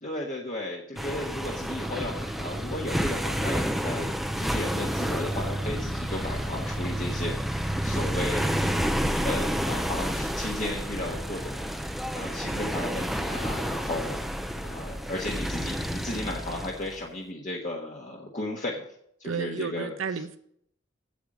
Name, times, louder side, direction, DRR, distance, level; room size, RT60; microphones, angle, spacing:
voice 1, 0.0-4.1 4.4-18.8 19.2-20.2, left 1 dB, 40° left, 1.3 m, -35 dB
sound 1, 1.0-17.0, equal, ahead, 0.5 m, -30 dB
voice 2, 19.2-20.4, right 5 dB, 90° right, 0.8 m, -32 dB
8.3 x 8.2 x 6.1 m
head